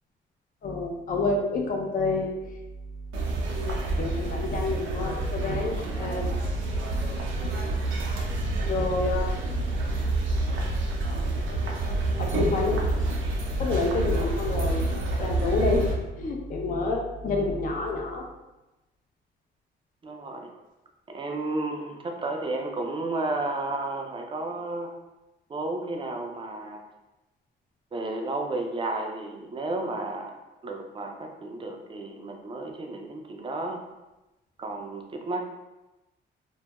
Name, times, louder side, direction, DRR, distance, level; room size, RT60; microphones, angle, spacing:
voice 1, 0.6-2.3 4.0-6.3 8.7-9.3 12.2-12.8 13.6-14.9 15.2-18.3, left 3 dB, 45° left, 1 dB, 0.5 m, -28 dB
sound 1, 3.1-15.9, right 2 dB, 85° right, 0.5 m, -28 dB
voice 2, 20.0-20.5 21.1-24.9 25.5-26.8 27.9-30.3 30.6-33.8 34.6-35.4, right 2 dB, 25° right, 2 dB, 0.4 m, -32 dB
2.2 x 2.1 x 2.8 m, 1.0 s
cardioid pair, 90°, 20 cm